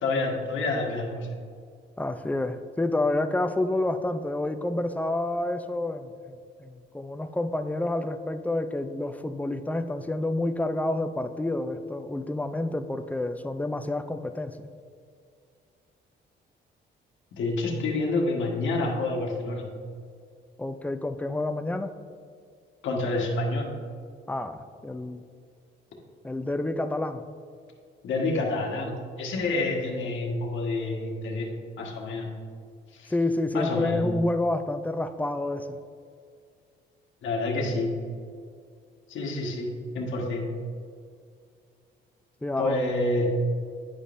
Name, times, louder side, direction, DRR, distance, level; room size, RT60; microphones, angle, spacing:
voice 1, 0.0-1.3 17.3-19.7 22.8-23.7 28.0-31.5 31.8-32.3 32.9-33.1 33.5-34.0 37.2-37.9 39.1-40.5 42.6-43.3, left 2 dB, 75° left, 0 dB, 1.3 m, -28 dB
voice 2, 2.0-14.7 20.6-22.0 24.3-25.2 26.2-27.2 33.1-35.8 42.4-42.8, left 2 dB, 10° left, 9 dB, 0.4 m, -29 dB
9.9 x 5.1 x 2.5 m, 2.2 s
cardioid pair, 90°, 20 cm